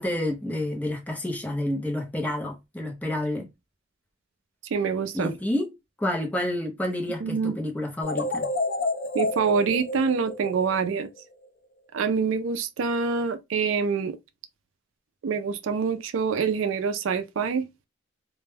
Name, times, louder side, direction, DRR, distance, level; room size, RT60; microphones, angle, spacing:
voice 1, 0.0-3.5 5.1-5.7 6.0-8.5, left 1 dB, 5° left, 0.5 m, -29 dB
voice 2, 4.7-5.3 7.2-7.6 9.1-11.1 11.9-14.2 15.2-17.7, right 5 dB, 75° right, 0.4 m, -26 dB
sound 1, 8.0-11.2, left 2 dB, 60° left, 0.5 m, -30 dB
2.2 x 2.1 x 3.2 m
head